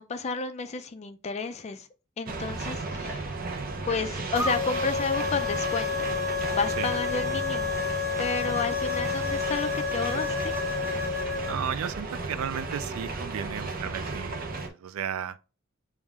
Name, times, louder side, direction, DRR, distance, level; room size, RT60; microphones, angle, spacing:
voice 1, 0.0-1.9 2.2-3.2 3.9-5.9 6.5-7.8 8.2-10.5, left 4 dB, 30° left, 0.4 m, -31 dB
sound 1, 2.3-14.7, right 3 dB, 45° right, 0.6 m, -34 dB
sound 2, 4.4-11.6, left 5 dB, 10° right, 0.8 m, -30 dB
voice 2, 11.4-15.4, right 8 dB, 90° right, 0.3 m, -34 dB
7.0 x 2.3 x 2.3 m
head